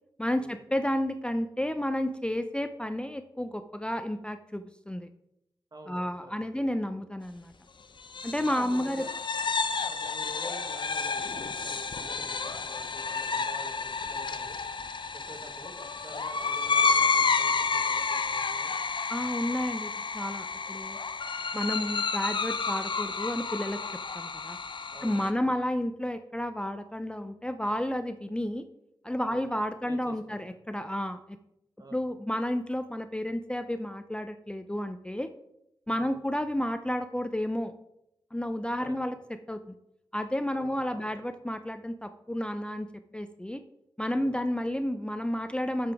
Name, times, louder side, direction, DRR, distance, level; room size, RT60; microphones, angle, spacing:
voice 1, 0.2-5.1 5.9-7.5 8.2-9.0 19.1-21.0 21.5-23.8 24.1-24.6 25.0-28.6 29.0-31.2 31.9-35.3 35.9-37.7 38.3-39.1 39.5-39.6 40.1-42.9 43.1-43.6 44.0-45.9, left 1 dB, 10° left, 9 dB, 0.5 m, -31 dB
voice 2, 5.7-6.5 8.4-9.1 9.7-14.6 15.1-18.7 24.9-25.6 29.2-29.5 29.8-30.6 31.8-32.0 35.9-36.2 38.8-39.1 40.5-41.1 44.1-44.4, right 1 dB, 45° right, 4 dB, 1.4 m, -48 dB
sound 1, 8.0-25.3, left 5 dB, 60° left, 0.6 m, -30 dB
7.8 x 6.9 x 3.5 m, 0.83 s
cardioid pair, 45°, 9 cm